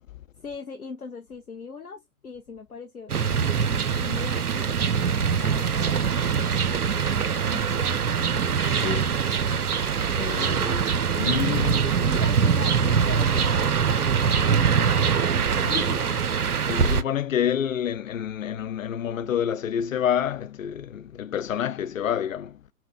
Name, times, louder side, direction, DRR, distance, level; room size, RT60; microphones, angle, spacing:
voice 1, 0.4-6.8 7.5-7.7 12.0-16.4, left 5 dB, 80° left, 1.2 m, -40 dB
sound 1, 3.1-17.0, right 6 dB, 85° right, 0.6 m, -23 dB
voice 2, 8.6-9.2 10.1-12.2 15.6-16.1 16.7-22.6, left 9 dB, 65° left, 0.5 m, -29 dB
4.2 x 4.2 x 2.2 m
figure-of-eight pair, 120°, 44 cm